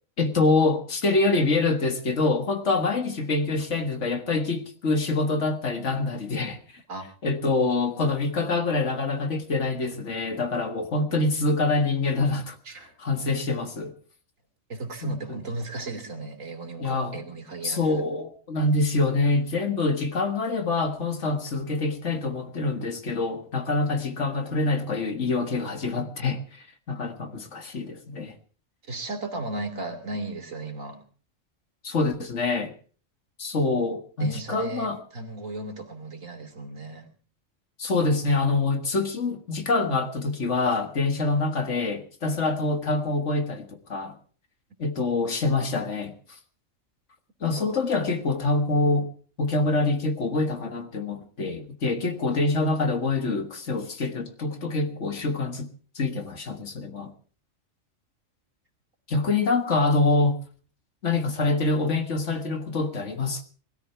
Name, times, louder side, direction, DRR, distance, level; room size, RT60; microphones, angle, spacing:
voice 1, 0.2-6.6 7.2-12.6 13.0-13.9 15.0-15.2 16.8-17.2 17.6-28.3 31.8-32.7 33.4-35.0 37.8-44.2 44.8-46.1 47.4-49.1 49.4-55.7 56.0-57.1 59.1-60.4 61.0-63.4, left 3 dB, 65° left, 2.0 m, -25 dB
voice 2, 14.7-18.0 28.8-31.0 34.2-37.1 47.6-47.8, right 2 dB, 80° right, 3.1 m, -35 dB
20.0 x 13.0 x 4.6 m
omnidirectional pair, 1.4 m